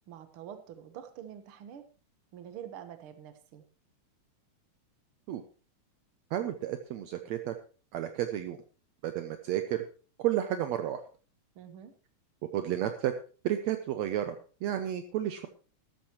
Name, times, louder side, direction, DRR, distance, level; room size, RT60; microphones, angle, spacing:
voice 1, 0.1-1.8 2.3-3.6 11.6-11.9, right 9 dB, 55° right, 8 dB, 1.8 m, -46 dB
voice 2, 6.3-7.6 7.9-8.6 9.0-9.8 10.2-11.0 12.5-13.1 13.4-15.5, right 11 dB, 75° right, 7 dB, 1.9 m, -32 dB
13.5 x 13.0 x 3.1 m, 0.37 s
omnidirectional pair, 3.4 m